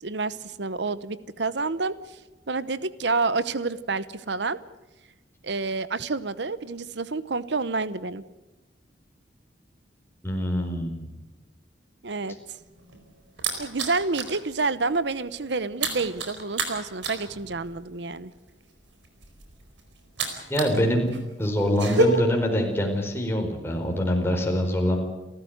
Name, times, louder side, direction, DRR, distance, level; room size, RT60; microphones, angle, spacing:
voice 1, 0.0-2.2 2.5-4.6 5.4-8.2 12.0-12.4 13.6-18.3, right 3 dB, 70° right, 15 dB, 0.9 m, -28 dB
voice 2, 10.2-11.1 20.5-21.1 21.4-25.0, equal, 15° left, 1 dB, 4.5 m, -24 dB
sound 1, 12.6-14.4 14.7-15.0 15.2-20.8 21.1-22.0, right 3 dB, 90° right, 4.6 m, -30 dB
29.5 x 14.0 x 8.0 m, 1.1 s
head